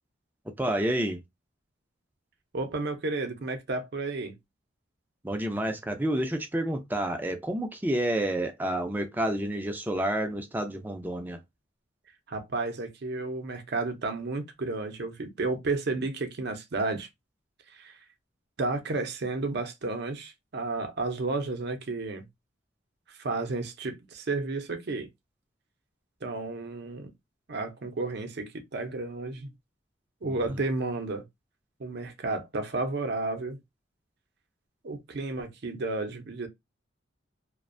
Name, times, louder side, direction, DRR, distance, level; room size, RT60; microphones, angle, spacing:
voice 1, 0.6-1.2 5.2-11.4 30.2-30.6, right 1 dB, 10° right, 0.4 m, -29 dB
voice 2, 2.5-4.4 12.3-17.1 17.7-17.9 18.6-22.2 23.2-25.1 26.2-27.1 27.5-29.5 30.2-31.2 31.8-33.6 34.8-36.5, right 3 dB, 60° right, 0.6 m, -32 dB
2.5 x 2.1 x 2.5 m
head